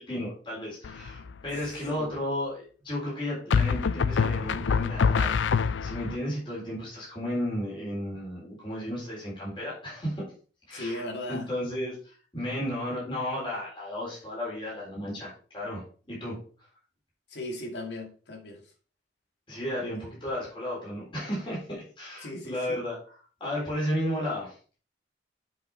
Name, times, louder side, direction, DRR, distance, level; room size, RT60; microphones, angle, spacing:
voice 1, 0.0-10.2 10.7-11.0 11.3-16.4 19.5-23.0 23.4-24.5, equal, 25° left, 3.8 m, -33 dB
sound 1, 0.8-1.3 3.5-6.2, left 6 dB, 85° left, 0.4 m, -25 dB
voice 2, 10.7-11.5 17.3-18.6 22.2-22.8, left 1 dB, 70° left, 2.1 m, -37 dB
7.8 x 5.4 x 4.3 m
head